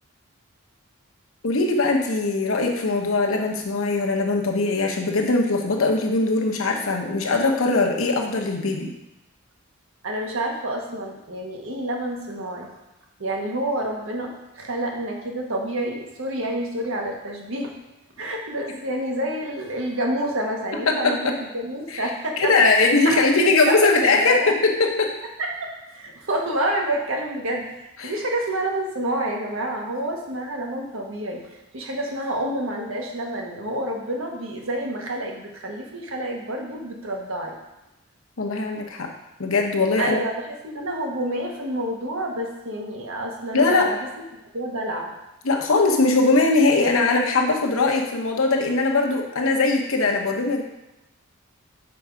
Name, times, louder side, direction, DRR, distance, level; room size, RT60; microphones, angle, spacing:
voice 1, 1.4-8.9 20.9-21.3 21.9-22.1 22.4-24.4 24.8-25.1 28.0-28.1 38.4-39.1 39.4-40.2 43.5-43.9 45.4-50.6, left 3 dB, 70° left, 2 dB, 1.0 m, -21 dB
voice 2, 10.0-12.7 13.2-17.7 18.2-22.5 23.0-24.5 25.4-27.7 28.0-31.5 31.7-37.6 40.0-40.3 40.6-44.1 44.5-45.1, right 1 dB, 65° right, 0 dB, 1.2 m, -28 dB
5.9 x 4.5 x 5.0 m, 0.96 s
head